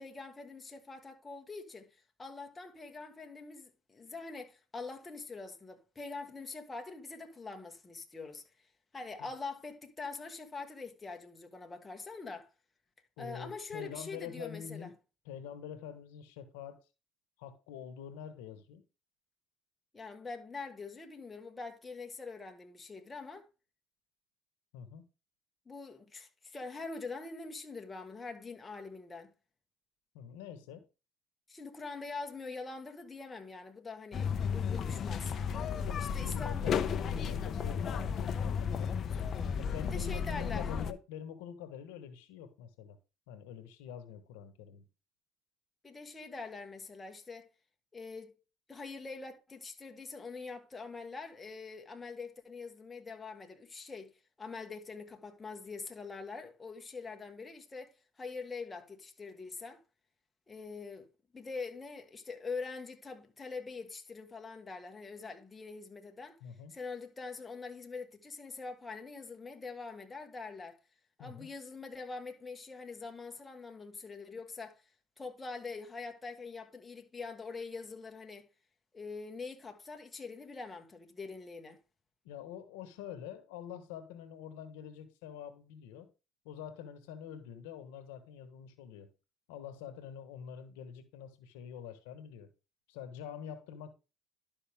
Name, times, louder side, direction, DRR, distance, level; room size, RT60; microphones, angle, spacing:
voice 1, 0.0-8.4 8.9-12.5 13.2-14.9 19.9-23.5 25.6-29.3 31.5-35.3 36.0-36.6 39.8-40.7 45.8-47.5 47.9-48.3 48.7-59.8 60.5-66.4 66.7-70.8 71.2-74.8 75.2-78.5 78.9-81.8, left 4 dB, 20° left, 1.5 m, -44 dB
voice 2, 13.2-14.9 15.2-16.8 17.4-18.8 24.7-25.1 30.1-30.9 35.9-38.9 39.6-43.0 43.3-44.9 66.4-66.7 71.2-71.5 82.2-86.1 86.4-89.1 89.5-92.5 92.9-94.0, left 8 dB, 85° left, 1.2 m, -46 dB
sound 1, 34.1-40.9, left 7 dB, 45° left, 0.8 m, -33 dB
11.5 x 5.4 x 3.5 m
supercardioid pair, 85°, 0 cm